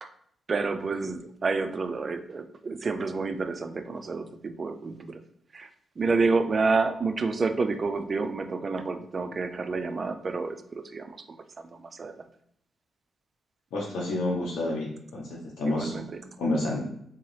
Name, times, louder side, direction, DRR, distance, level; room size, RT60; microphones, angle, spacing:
voice 1, 0.5-5.2 5.5-5.7 6.0-12.2 15.6-16.2, right 4 dB, 35° right, 8 dB, 0.3 m, -29 dB
voice 2, 13.7-15.2 15.6-15.9 16.4-16.8, left 2 dB, 90° left, -4 dB, 0.8 m, -28 dB
3.7 x 2.8 x 3.1 m, 0.71 s
cardioid pair, 135°, 0 cm